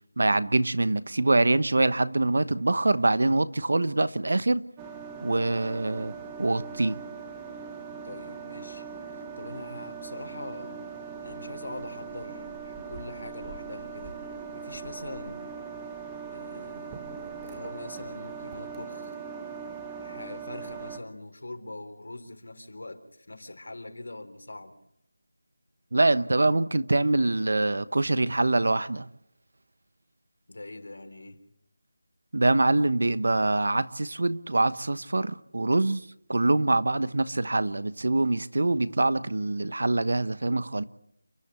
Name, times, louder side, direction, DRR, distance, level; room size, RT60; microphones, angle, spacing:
voice 1, 0.2-4.6 5.2-6.1 6.4-7.0 25.9-29.1 32.3-36.0 36.3-40.8, right 2 dB, 60° right, 1.1 m, -24 dB
sound 1, 4.8-21.0, right 6 dB, 10° right, 0.9 m, -40 dB
voice 2, 8.0-10.8 11.2-14.2 14.5-15.6 16.3-17.0 17.4-19.2 20.0-24.7 30.5-31.4, left 2 dB, 70° left, 3.7 m, -42 dB
29.5 x 11.5 x 8.5 m
figure-of-eight pair, 180°, 0 cm